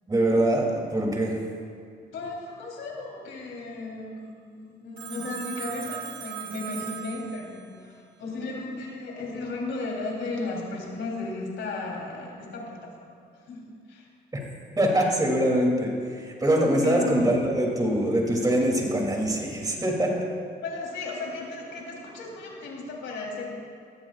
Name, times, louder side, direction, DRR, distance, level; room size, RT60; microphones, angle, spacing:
voice 1, 0.1-1.4 14.8-20.1, right 1 dB, 20° right, -1 dB, 2.9 m, -23 dB
voice 2, 2.1-14.1 16.8-17.3 20.6-23.5, left 3 dB, 70° left, -2 dB, 3.6 m, -35 dB
Telephone, 5.0-7.8, right 10 dB, 75° right, 1.0 m, -38 dB
18.5 x 13.5 x 2.5 m, 2.2 s
cardioid pair, 90°, 20 cm